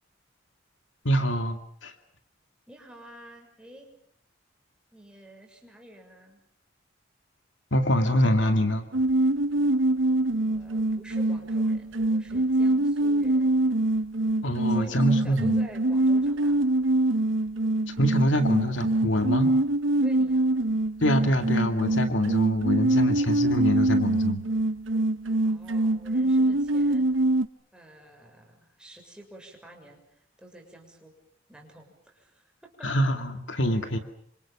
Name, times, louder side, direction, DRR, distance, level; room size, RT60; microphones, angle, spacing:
voice 1, 1.0-1.9 7.7-8.9 14.4-15.6 17.9-19.5 21.0-24.4 32.8-34.0, equal, 70° left, 7 dB, 2.4 m, -25 dB
voice 2, 2.7-3.9 4.9-6.4 10.4-13.8 14.6-16.7 20.0-20.5 25.4-27.1 27.7-31.1 31.5-32.9, right 1 dB, 5° right, 2 dB, 6.5 m, -49 dB
sound 1, 8.9-27.5, right 2 dB, 85° right, 1.0 m, -24 dB
28.0 x 26.0 x 7.2 m, 0.65 s
head